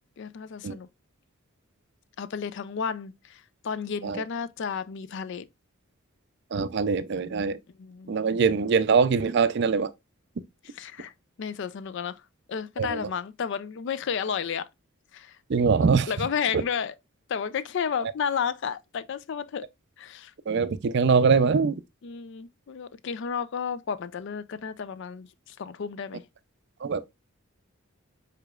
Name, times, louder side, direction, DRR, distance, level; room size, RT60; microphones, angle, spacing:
voice 1, 0.2-0.9 2.2-5.5 7.8-8.2 10.7-11.1 11.4-12.2 12.5-14.7 15.1-15.4 16.1-16.9 17.3-19.7 20.0-20.3 22.0-26.2, left 7 dB, 55° left, 0.4 m, -32 dB
voice 2, 6.5-7.6 8.1-9.9 12.8-13.1 15.5-16.1 16.5-16.6 20.5-21.8 26.8-27.1, right 5 dB, 50° right, 0.4 m, -23 dB
4.9 x 4.5 x 2.3 m
head